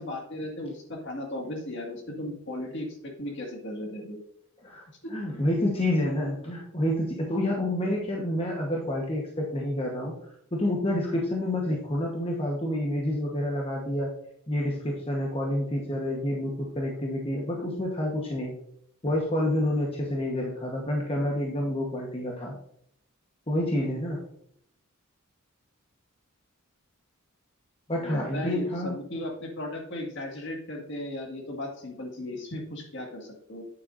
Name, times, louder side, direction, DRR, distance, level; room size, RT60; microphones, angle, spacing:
voice 1, 0.0-4.2 5.0-5.1 28.0-33.6, left 1 dB, 55° left, 0 dB, 1.9 m, -36 dB
voice 2, 5.1-10.1 10.5-14.1 14.5-18.5 19.0-22.5 23.5-24.2 27.9-29.0, left 1 dB, 25° left, -1 dB, 1.1 m, -28 dB
8.9 x 8.0 x 2.6 m, 0.70 s
head